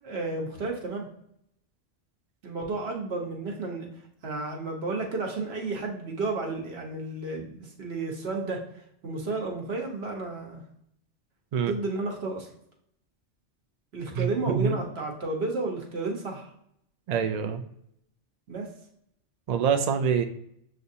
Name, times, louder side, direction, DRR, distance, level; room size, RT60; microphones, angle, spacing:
voice 1, 0.0-1.1 2.4-3.9 4.2-8.6 9.0-10.6 11.7-12.5 13.9-16.5 18.5-18.7, right 3 dB, 60° right, 0 dB, 1.2 m, -32 dB
voice 2, 14.1-14.8 17.1-17.6 19.5-20.2, right 7 dB, 85° right, 6 dB, 0.3 m, -25 dB
6.9 x 2.5 x 2.7 m, 0.73 s
omnidirectional pair, 1.2 m